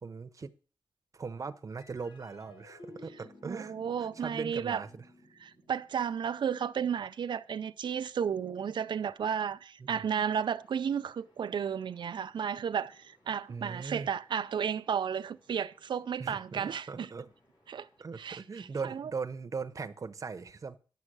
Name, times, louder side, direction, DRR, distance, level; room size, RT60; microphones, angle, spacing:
voice 1, 0.0-0.5 1.1-3.7 4.0-5.0 9.8-10.2 13.5-14.1 16.2-17.3 18.0-20.8, right 5 dB, 40° right, 0.8 m, -40 dB
sound 1, 1.8-8.5, left 2 dB, 70° left, 1.4 m, -56 dB
voice 2, 3.4-4.8 5.4-17.1 17.7-17.9 18.2-19.1, right 7 dB, 70° right, 0.5 m, -33 dB
sound 2, 10.5-18.1, equal, 50° left, 4.3 m, -68 dB
10.5 x 6.5 x 6.2 m
wide cardioid pair, 140°, 8 cm